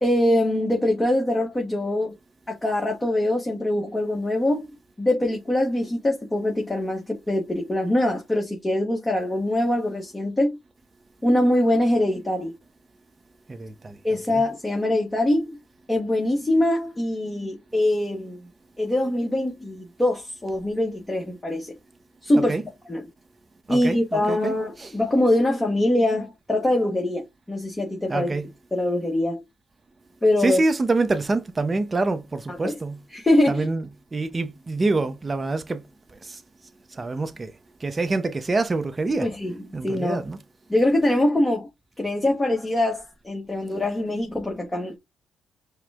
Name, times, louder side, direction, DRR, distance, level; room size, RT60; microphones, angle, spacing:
voice 1, 0.0-2.1 2.5-4.7 5.0-10.5 11.2-12.5 14.0-15.6 15.9-18.4 18.8-21.7 22.2-22.5 22.9-23.1 23.7-27.2 27.5-28.4 28.7-29.4 30.2-30.6 32.5-32.7 33.1-33.7 39.2-39.6 39.8-40.2 40.7-41.7 42.0-45.0, left 1 dB, 15° left, 1.4 m, -23 dB
voice 2, 13.5-14.0 14.3-14.4 22.4-22.6 23.7-24.5 24.8-24.9 28.1-28.5 30.4-33.0 33.5-33.8 34.1-35.8 36.2-36.4 36.9-37.5 37.8-39.3 39.7-40.4, right 3 dB, 25° right, 0.7 m, -26 dB
4.8 x 2.3 x 3.5 m
cardioid pair, 90°, 0 cm